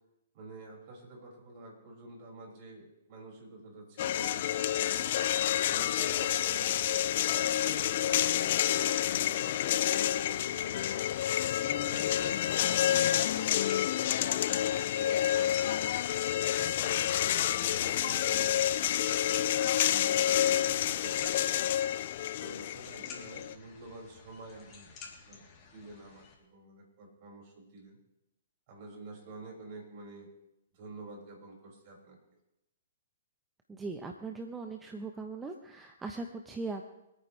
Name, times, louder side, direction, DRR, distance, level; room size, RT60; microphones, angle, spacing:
voice 1, 0.3-5.2 5.7-6.8 7.3-11.1 11.6-15.7 16.4-19.2 19.7-21.5 22.4-25.5 25.7-28.0 28.7-30.3 30.7-32.2, right 2 dB, 45° right, -2 dB, 6.3 m, -49 dB
sound 1, 4.0-23.5, left 11 dB, 55° left, 0.5 m, -29 dB
sound 2, 12.1-26.3, left 5 dB, 30° left, 3.4 m, -52 dB
voice 2, 33.7-36.8, right 3 dB, 10° right, 4 dB, 1.0 m, -39 dB
25.5 x 9.2 x 3.4 m, 0.91 s
hypercardioid pair, 125°, 0 cm